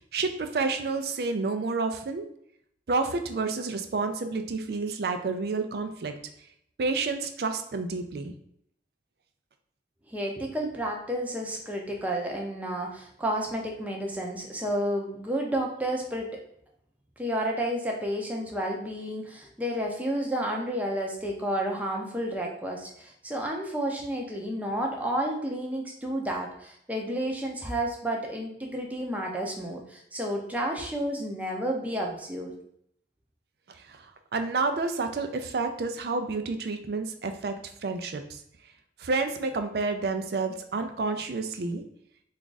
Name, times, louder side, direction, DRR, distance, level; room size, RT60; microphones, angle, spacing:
voice 1, 0.1-2.2 2.9-6.1 6.8-8.3 33.7-38.4 39.0-41.8, right 3 dB, 60° right, 7 dB, 0.4 m, -30 dB
voice 2, 10.1-16.3 17.2-32.5, right 1 dB, 10° right, 0 dB, 0.6 m, -31 dB
3.4 x 2.4 x 3.9 m, 0.69 s
head